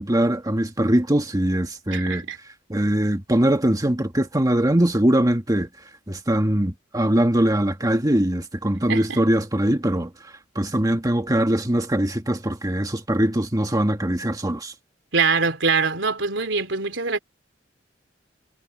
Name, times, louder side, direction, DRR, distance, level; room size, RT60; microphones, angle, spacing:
voice 1, 0.0-2.3 2.7-5.7 6.1-14.7, right 1 dB, 20° right, 1.6 m, -22 dB
voice 2, 1.9-2.4 8.9-9.2 15.1-17.2, right 4 dB, 80° right, 3.4 m, -23 dB
head